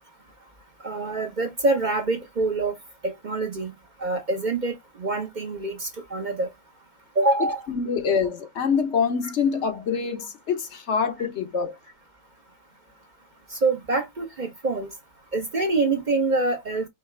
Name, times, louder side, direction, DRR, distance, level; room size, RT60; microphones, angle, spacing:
voice 1, 0.8-2.7 3.0-3.7 4.0-6.5 7.2-7.6 13.5-14.9 15.3-16.9, right 3 dB, 40° right, 0.8 m, -25 dB
voice 2, 7.7-11.8, left 6 dB, 60° left, 1.1 m, -25 dB
4.8 x 3.3 x 3.3 m
omnidirectional pair, 1.4 m